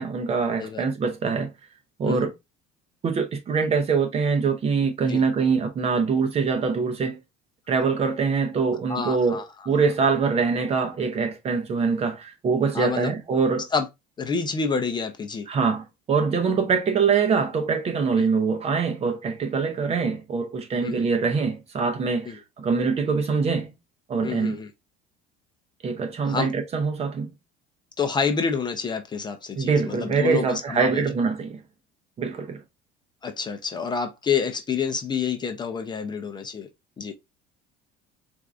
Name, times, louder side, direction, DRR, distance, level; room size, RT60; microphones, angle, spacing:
voice 1, 0.0-1.5 2.0-2.3 3.0-7.2 7.7-13.7 15.5-23.7 24.1-24.6 25.8-27.3 29.6-31.6 32.2-32.6, right 5 dB, 30° right, 0.6 m, -24 dB
voice 2, 8.9-9.5 12.7-13.1 13.7-13.9 14.2-15.5 18.2-18.3 20.8-21.0 22.3-22.4 24.2-24.7 26.3-26.5 28.0-31.0 33.2-36.7 37.0-37.1, left 5 dB, 20° left, 0.5 m, -28 dB
4.4 x 2.5 x 2.4 m
cardioid pair, 140°, 20 cm